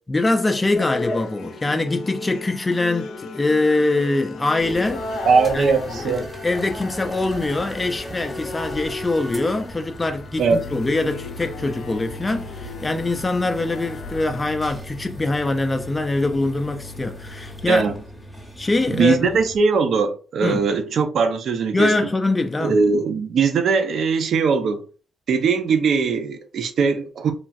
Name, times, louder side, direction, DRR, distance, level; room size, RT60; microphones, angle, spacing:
voice 1, 0.1-5.1 5.5-17.9 18.6-19.3 20.4-20.7 21.7-22.8, left 2 dB, 20° left, 0.3 m, -23 dB
sound 1, 0.7-14.5, left 3 dB, 85° left, 0.5 m, -36 dB
sound 2, 4.6-19.6, left 1 dB, 5° right, 0.7 m, -37 dB
voice 2, 5.2-6.3 10.4-10.6 17.7-17.9 18.9-21.9 22.6-24.9 25.3-27.3, right 5 dB, 65° right, 0.5 m, -20 dB
3.1 x 2.3 x 2.5 m
cardioid pair, 130°, 0 cm